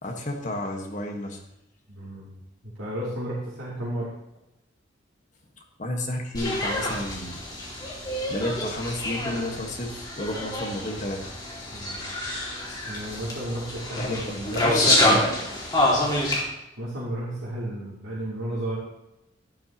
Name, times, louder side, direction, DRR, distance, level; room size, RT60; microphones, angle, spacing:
voice 1, 0.0-1.4 5.8-7.4 8.3-11.3 14.0-15.4, left 1 dB, 40° left, 2 dB, 1.6 m, -31 dB
voice 2, 1.9-2.3 2.8-4.1 11.7-12.1 12.9-14.7 16.8-18.8, right 1 dB, 80° right, -10 dB, 3.3 m, -33 dB
sound 1, 6.3-16.4, left 1 dB, 20° left, 2.4 m, -27 dB
12.0 x 11.5 x 3.0 m, 0.89 s
head